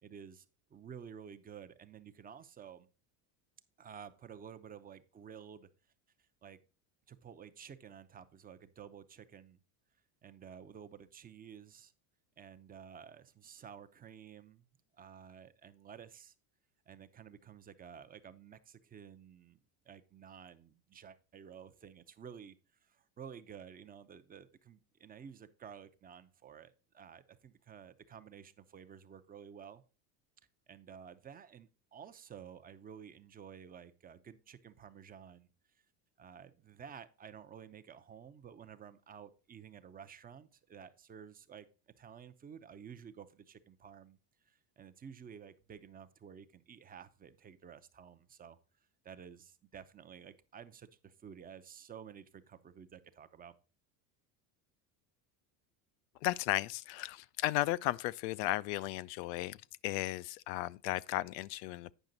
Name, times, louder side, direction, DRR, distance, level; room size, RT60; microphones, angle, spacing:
voice 1, 0.0-0.5 0.7-2.9 3.8-5.7 6.4-6.6 7.1-9.6 10.2-11.9 12.4-14.7 15.0-16.3 16.9-19.6 19.9-22.6 22.8-29.8 30.7-35.5 36.2-44.2 44.5-48.6 49.0-53.5, right 7 dB, 20° right, 0.5 m, -52 dB
voice 2, 56.2-59.6 59.8-61.9, left 16 dB, 85° left, 0.5 m, -35 dB
9.1 x 5.8 x 3.9 m
cardioid pair, 135°, 48 cm